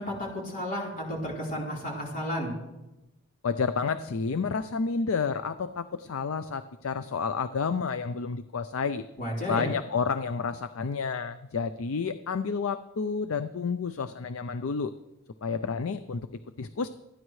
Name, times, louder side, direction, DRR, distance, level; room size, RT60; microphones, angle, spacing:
voice 1, 0.0-2.5 9.2-9.7, equal, 40° left, -4 dB, 4.1 m, -32 dB
voice 2, 3.4-9.1 9.5-14.9 15.4-16.9, left 5 dB, 75° left, 11 dB, 0.5 m, -30 dB
28.0 x 10.0 x 3.2 m, 0.99 s
head